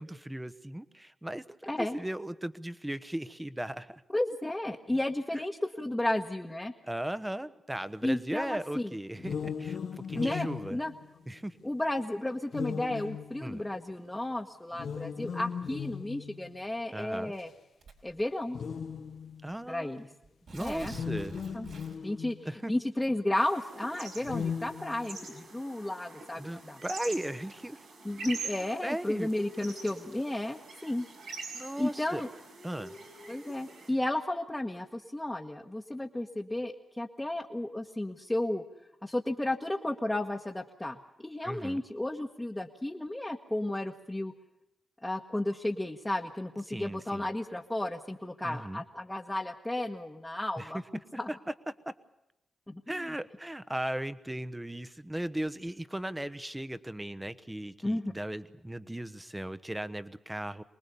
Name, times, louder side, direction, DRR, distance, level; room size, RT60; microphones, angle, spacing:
voice 1, 0.0-4.0 5.3-5.4 6.8-10.8 11.3-11.6 12.9-13.1 13.4-13.6 16.9-17.3 19.4-20.0 20.5-21.3 22.4-22.7 26.4-27.8 28.4-29.3 31.5-32.2 32.6-32.9 41.4-41.8 46.7-47.3 48.4-48.8 50.6-50.8 51.3-51.9 52.9-60.6, right 1 dB, 15° right, 14 dB, 1.1 m, -37 dB
voice 2, 4.1-6.7 8.0-8.9 10.2-10.9 11.6-17.5 18.0-18.6 19.7-20.1 20.6-20.9 21.5-21.7 22.0-22.4 22.7-26.8 28.0-31.1 31.8-32.3 33.3-38.6 39.0-44.3 45.0-50.8 51.2-51.3 52.7-53.1 57.8-58.1, left 1 dB, 15° left, 0 dB, 1.4 m, -33 dB
sound 1, 9.2-11.6 12.5-13.8 14.7-16.6 17.4-17.5 18.5-19.5 20.8-22.6 24.2-25.4, left 7 dB, 70° left, 0.8 m, -38 dB
Tearing, 17.8-18.2 19.1-19.2 19.5-19.6 20.2-22.2, right 3 dB, 75° right, 4.2 m, -47 dB
sound 2, 23.4-33.9, right 3 dB, 90° right, 4.5 m, -45 dB
24.0 x 20.0 x 7.0 m, 0.88 s
supercardioid pair, 45°, 0 cm